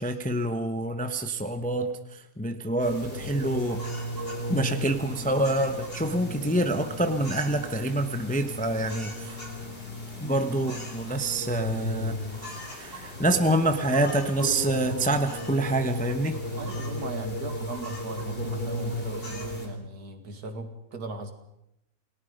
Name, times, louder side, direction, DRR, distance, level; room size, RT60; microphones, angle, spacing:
voice 1, 0.0-3.8 4.5-9.4 10.2-16.4, right 1 dB, 5° left, 7 dB, 0.9 m, -27 dB
sound 1, 2.8-19.7, left 1 dB, 30° left, 4.2 m, -35 dB
voice 2, 16.6-21.3, right 2 dB, 60° right, 7 dB, 2.5 m, -38 dB
28.5 x 18.5 x 5.2 m, 0.82 s
omnidirectional pair, 1.9 m